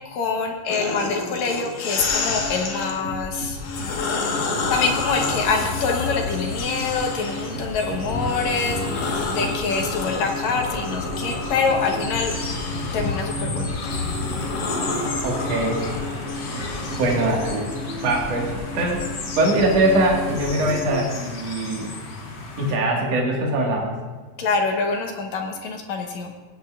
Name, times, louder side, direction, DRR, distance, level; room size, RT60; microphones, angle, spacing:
voice 1, 0.1-3.6 4.7-12.4 12.9-13.9 24.4-26.3, left 4 dB, 70° left, 2 dB, 2.2 m, -25 dB
sound 1, 0.7-3.0 3.5-7.6 8.1-17.3, left 4 dB, 85° left, 3.0 m, -30 dB
sound 2, 2.0-21.0, left 1 dB, 40° right, 3.3 m, -33 dB
sound 3, 4.2-22.8, left 3 dB, 55° left, 1.2 m, -34 dB
voice 2, 15.2-15.8 17.0-17.7 18.0-19.1 19.3-21.9 22.6-23.9, right 1 dB, 60° right, -2 dB, 2.7 m, -22 dB
19.0 x 9.8 x 2.4 m, 1.3 s
omnidirectional pair, 3.5 m